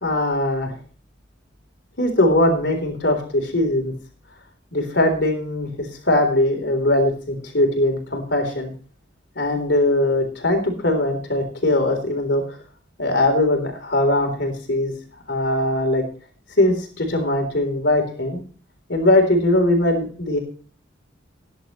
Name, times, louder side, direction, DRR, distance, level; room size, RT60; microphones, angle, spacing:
voice 1, 0.0-0.7 2.0-3.9 4.7-8.7 9.4-12.4 13.0-14.9 15.3-16.0 16.6-18.4 18.9-20.4, left 1 dB, 65° left, 4 dB, 3.7 m, -20 dB
17.5 x 10.5 x 3.1 m, 0.41 s
head